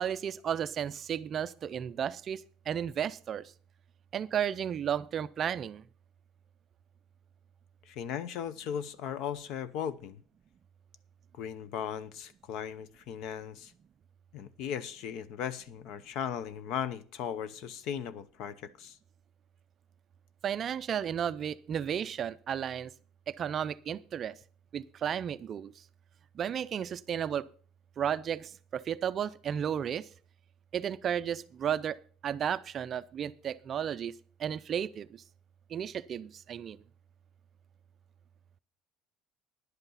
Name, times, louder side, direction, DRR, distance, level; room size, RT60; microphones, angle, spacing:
voice 1, 0.0-3.5 4.1-5.8 20.4-22.9 23.3-24.3 24.7-25.7 26.3-27.5 28.0-30.1 30.7-34.1 34.4-35.2 35.7-36.8, right 9 dB, 30° right, 0.4 m, -33 dB
voice 2, 7.9-10.2 11.3-13.7 14.3-19.0, left 8 dB, 50° left, 0.7 m, -37 dB
10.5 x 8.1 x 5.6 m
cardioid pair, 180°, 0 cm